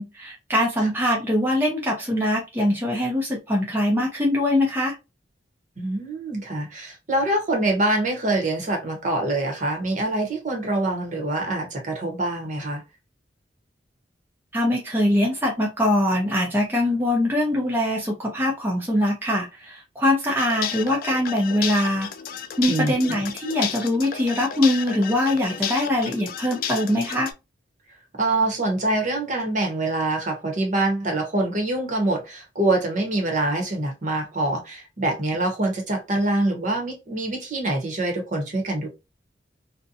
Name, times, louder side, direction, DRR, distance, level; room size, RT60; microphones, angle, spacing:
voice 1, 0.0-4.9 14.5-22.1 22.6-27.3, left 1 dB, 10° right, 0.5 m, -22 dB
voice 2, 5.8-12.8 22.7-23.1 28.2-38.9, right 2 dB, 45° right, 0.9 m, -25 dB
sound 1, 20.4-27.3, left 8 dB, 55° left, 0.3 m, -32 dB
2.6 x 2.1 x 2.5 m
head